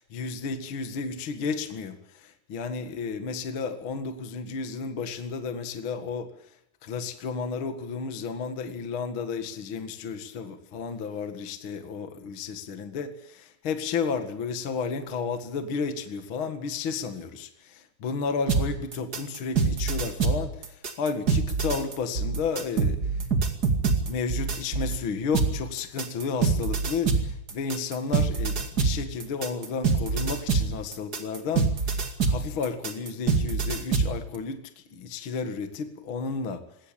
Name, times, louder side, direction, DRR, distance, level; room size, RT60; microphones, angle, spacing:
voice 1, 0.1-6.3 6.8-23.2 24.0-34.6 34.9-36.6, left 5 dB, 45° left, 8 dB, 1.8 m, -32 dB
sound 1, 18.5-25.0 25.3-34.2, right 4 dB, 30° right, 1.9 m, -25 dB
21.0 x 17.5 x 8.6 m, 0.80 s
omnidirectional pair, 4.7 m